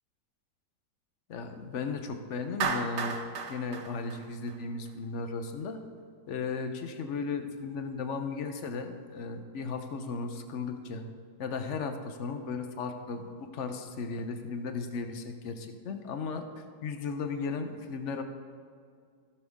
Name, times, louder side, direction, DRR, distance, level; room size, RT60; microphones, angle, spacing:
voice 1, 1.3-5.8 6.3-11.1 11.4-16.4 16.8-18.2, left 4 dB, 60° left, 6 dB, 0.7 m, -35 dB
Clapping, 2.6-4.9, right 5 dB, 70° right, 1.4 m, -34 dB
16.0 x 6.8 x 3.5 m, 2.2 s
omnidirectional pair, 2.1 m